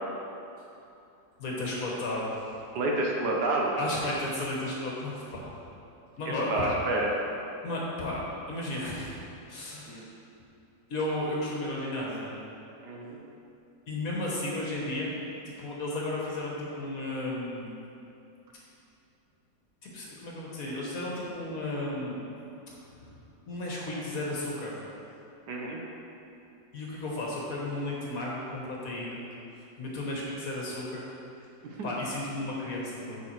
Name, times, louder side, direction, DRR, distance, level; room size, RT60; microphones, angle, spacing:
voice 1, 1.4-2.2 3.7-5.5 6.2-6.7 7.6-9.1 9.5-10.1 10.9-12.3 13.9-15.1 15.6-17.7 19.8-22.3 23.5-24.7 26.7-29.2 29.8-31.0 31.8-33.2, left 1 dB, 50° left, -4 dB, 1.4 m, -33 dB
voice 2, 2.7-3.8 6.3-7.1 9.9-10.0 12.8-13.2 25.5-25.8 31.6-31.9, right 2 dB, 65° right, -1 dB, 1.3 m, -29 dB
7.0 x 5.6 x 4.4 m, 2.7 s
omnidirectional pair, 2.0 m